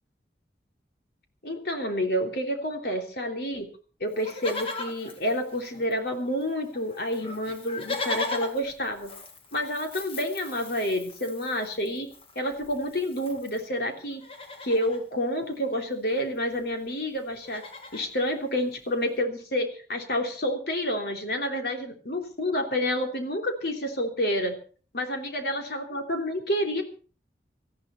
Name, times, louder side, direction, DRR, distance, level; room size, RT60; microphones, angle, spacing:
voice 1, 1.4-3.7 4.0-9.1 9.5-12.1 12.3-14.2 14.6-17.6 17.9-24.5 24.9-26.8, equal, 60° left, 3 dB, 3.3 m, -29 dB
Livestock farm animals working animals, 4.1-6.1 6.4-6.5 6.7-13.7 14.1-15.0 16.2-16.3 16.5-16.8 17.1-18.1 18.7-18.8, left 3 dB, 30° left, 1.9 m, -38 dB
19.0 x 14.0 x 4.4 m, 0.40 s
head